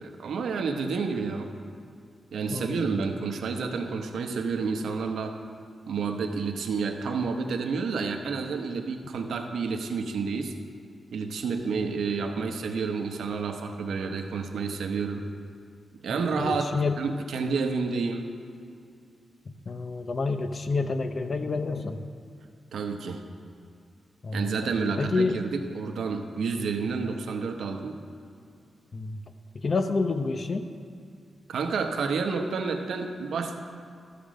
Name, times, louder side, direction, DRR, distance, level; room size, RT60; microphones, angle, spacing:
voice 1, 0.0-1.5 2.3-5.3 5.9-10.5 11.1-15.2 16.0-16.7 17.0-18.3 22.7-23.2 24.3-28.0 31.5-33.6, right 5 dB, 85° right, 4 dB, 0.9 m, -30 dB
voice 2, 2.5-2.9 11.8-12.0 16.1-17.0 19.5-22.1 24.2-25.4 28.9-29.2 29.5-30.7, left 3 dB, 35° left, 8 dB, 0.6 m, -29 dB
13.0 x 5.1 x 6.3 m, 2.3 s
wide cardioid pair, 145°, 0 cm